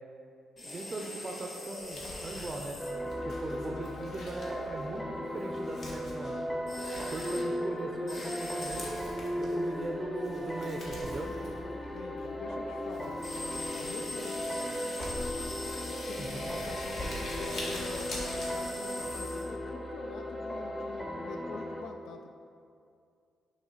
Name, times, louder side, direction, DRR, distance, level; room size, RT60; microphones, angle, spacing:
sound 1, 0.6-2.9 6.7-7.5 8.1-8.9 13.2-19.5, left 2 dB, 40° left, 1.3 m, -42 dB
voice 1, 0.6-2.8 3.2-6.6 7.1-8.9 9.4-11.4 16.2-16.5, right 2 dB, 30° right, 2 dB, 0.5 m, -40 dB
Crumpling crinkling, 1.8-19.2, left 1 dB, 65° left, 1.4 m, -46 dB
sound 2, 2.8-21.8, equal, 10° left, 0.7 m, -36 dB
voice 2, 3.7-4.1 11.9-13.2 13.7-15.3 15.8-22.3, left 4 dB, 90° left, 4 dB, 0.3 m, -46 dB
6.3 x 3.1 x 5.4 m, 2.4 s
cardioid pair, 95°, 0 cm